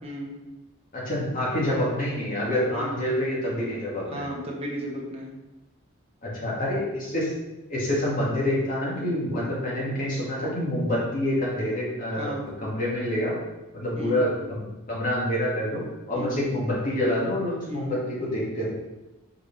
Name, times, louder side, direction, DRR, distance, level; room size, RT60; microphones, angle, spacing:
voice 1, 0.0-0.4 2.7-3.0 4.1-5.3 12.2-12.5 13.9-14.2 16.1-16.4 17.7-18.0, equal, 25° right, -2 dB, 1.3 m, -34 dB
voice 2, 0.9-4.3 6.2-7.3 7.7-12.3 12.6-13.4 13.7-15.8 16.1-18.7, left 1 dB, 40° left, -6 dB, 2.0 m, -27 dB
4.9 x 4.8 x 5.2 m, 1.0 s
head